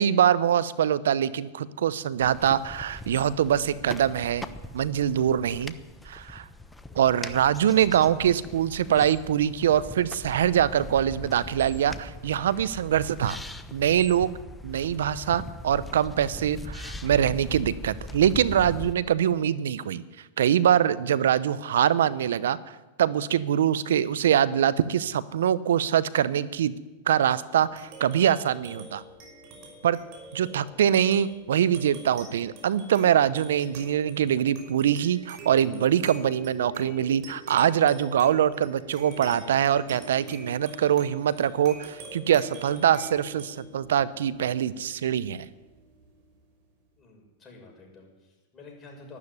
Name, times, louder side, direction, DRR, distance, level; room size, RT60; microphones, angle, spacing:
voice 1, 0.0-4.5 4.7-5.7 6.1-6.4 7.0-13.4 13.7-14.4 14.6-20.0 20.4-26.7 27.1-29.0 29.8-30.0 30.3-45.5, right 9 dB, 75° right, 17 dB, 0.7 m, -24 dB
sound 1, 2.2-18.9, left 1 dB, 10° left, 1.1 m, -41 dB
sound 2, 27.5-46.4, right 2 dB, 50° right, 5.7 m, -45 dB
voice 2, 47.0-49.2, left 3 dB, 25° left, 0 dB, 6.5 m, -49 dB
12.5 x 12.0 x 9.6 m, 1.2 s
hypercardioid pair, 105°, 0 cm